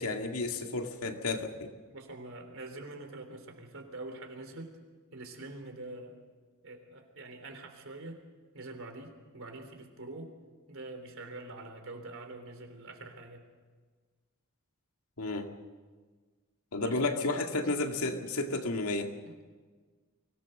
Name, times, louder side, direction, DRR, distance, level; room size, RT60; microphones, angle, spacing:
voice 1, 0.0-1.7 15.2-15.5 16.7-19.1, left 2 dB, 75° left, 4 dB, 2.1 m, -32 dB
voice 2, 1.9-4.8 5.1-6.2 6.6-8.3 8.5-10.4 10.7-13.4 16.8-17.1 19.3-19.4, right 2 dB, 65° right, 5 dB, 3.5 m, -45 dB
23.5 x 18.0 x 6.7 m, 1.4 s
head